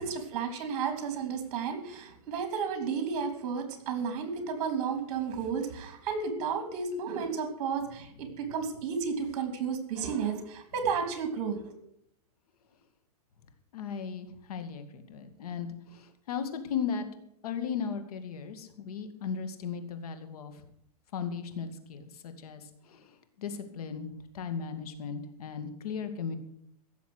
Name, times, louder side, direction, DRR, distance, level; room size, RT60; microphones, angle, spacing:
voice 1, 0.0-11.7, right 6 dB, 50° right, 8 dB, 3.2 m, -32 dB
voice 2, 13.7-17.1 17.4-20.5 21.1-23.1 23.4-24.1 24.3-26.4, left 6 dB, 70° left, 9 dB, 2.4 m, -36 dB
16.0 x 7.1 x 8.0 m, 0.73 s
hypercardioid pair, 150°, 20 cm